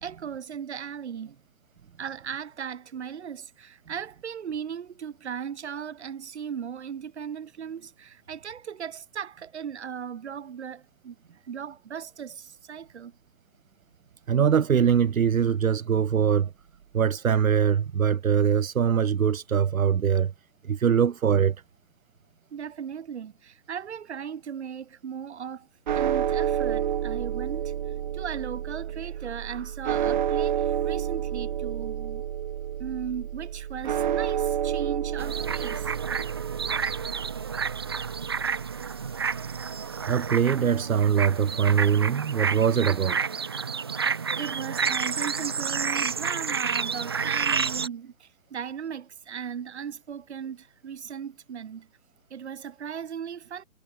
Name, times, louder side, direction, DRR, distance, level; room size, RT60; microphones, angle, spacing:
voice 1, 0.0-1.4 2.0-13.1 20.8-21.0 22.5-25.7 25.9-32.2 32.8-35.9 44.0-51.9 52.3-53.6, right 8 dB, 55° right, 1.5 m, -37 dB
voice 2, 14.3-16.5 16.9-20.3 20.6-21.6 40.1-43.2, right 7 dB, 85° right, 0.7 m, -22 dB
sound 1, 25.9-40.1, right 10 dB, 35° right, 0.9 m, -30 dB
sound 2, 35.2-47.9, right 6 dB, 20° right, 0.5 m, -30 dB
figure-of-eight pair, 140°, 40 cm